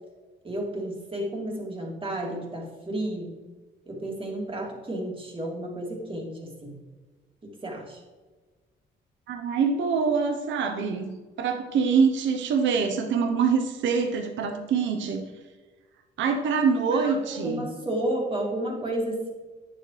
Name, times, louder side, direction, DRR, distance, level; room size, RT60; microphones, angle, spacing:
voice 1, 0.4-3.3 3.9-6.8 7.4-8.0 16.9-19.3, right 1 dB, 25° right, -1 dB, 2.5 m, -32 dB
voice 2, 9.3-15.3 16.2-17.7, right 5 dB, 75° right, 5 dB, 0.9 m, -25 dB
9.3 x 7.1 x 3.2 m, 1.3 s
cardioid pair, 90°, 20 cm